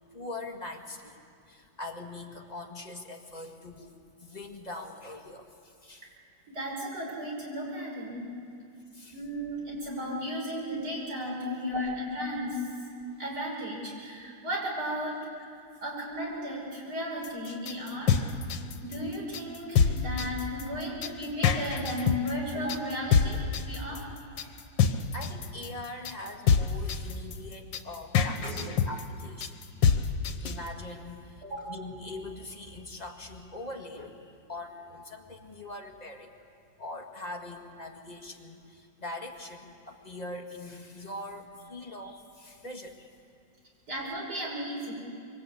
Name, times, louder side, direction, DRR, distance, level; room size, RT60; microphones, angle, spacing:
voice 1, 0.1-1.2 1.5-3.9 4.2-5.5 5.8-6.1 8.9-9.2 11.4-11.6 24.9-29.6 30.4-36.3 36.8-43.1, left 2 dB, 20° left, 2 dB, 1.9 m, -42 dB
voice 2, 6.5-8.3 9.1-12.6 13.2-15.5 15.8-18.2 18.8-24.0 24.4-24.6 28.4-28.7 31.4-31.7 43.9-44.9, equal, 60° right, -1 dB, 6.4 m, -35 dB
sound 1, 17.2-30.7, left 6 dB, 80° left, 1.8 m, -26 dB
26.0 x 23.5 x 8.5 m, 2.4 s
omnidirectional pair, 2.0 m